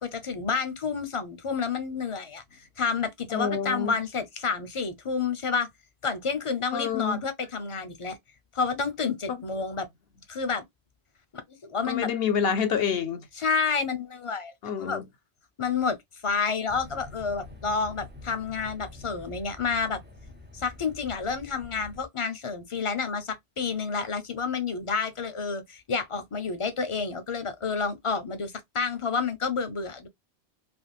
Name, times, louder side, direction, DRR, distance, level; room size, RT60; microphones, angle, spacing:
voice 1, 0.0-2.4 2.8-5.7 6.0-8.2 8.5-9.9 10.3-10.6 11.6-12.1 13.4-14.5 14.8-15.0 15.6-16.0 16.2-20.0 20.5-30.1, left 5 dB, 35° left, 0.6 m, -29 dB
voice 2, 3.3-4.0 6.7-7.2 9.3-9.4 11.8-13.3 14.6-15.1, left 7 dB, 70° left, 0.8 m, -27 dB
sound 1, 16.7-22.1, left 3 dB, 15° right, 0.4 m, -46 dB
3.4 x 2.4 x 2.3 m
omnidirectional pair, 1.1 m